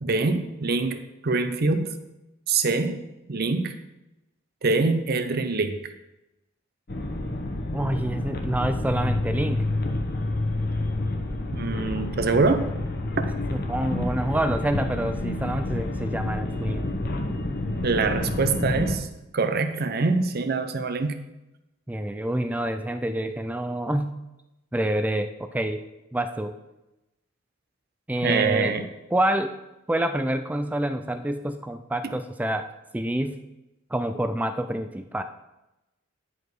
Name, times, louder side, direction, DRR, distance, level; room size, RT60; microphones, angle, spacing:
voice 1, 0.0-1.9 2.5-3.0 3.3-3.7 4.6-5.7 11.5-12.6 13.2-13.3 17.8-19.1 19.3-21.2 28.2-28.8, right 3 dB, 50° right, 8 dB, 0.7 m, -24 dB
sound 1, 6.9-19.0, left 2 dB, 50° left, 0.9 m, -29 dB
voice 2, 7.7-9.7 13.5-16.9 21.9-24.1 24.7-25.8 26.1-26.5 28.1-28.7 29.1-29.5 29.9-33.4 33.9-35.2, right 1 dB, 10° right, 8 dB, 0.3 m, -27 dB
10.0 x 4.8 x 4.7 m, 0.95 s
head